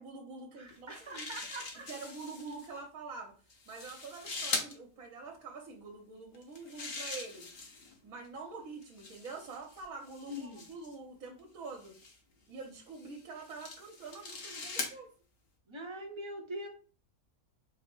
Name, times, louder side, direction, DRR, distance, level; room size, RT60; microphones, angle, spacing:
voice 1, 0.0-1.3 1.9-3.3 3.7-7.5 8.0-12.0 12.5-15.1, right 4 dB, 75° right, 1 dB, 1.2 m, -46 dB
voice 2, 0.6-1.9 10.3-10.7 15.7-16.7, equal, 30° right, 1 dB, 0.6 m, -43 dB
sound 1, 0.7-2.7 3.5-4.7 6.3-8.0 8.8-11.0 11.8-12.2 12.9-15.0, left 3 dB, 50° left, 1.0 m, -41 dB
4.4 x 2.0 x 4.3 m, 0.39 s
omnidirectional pair, 1.5 m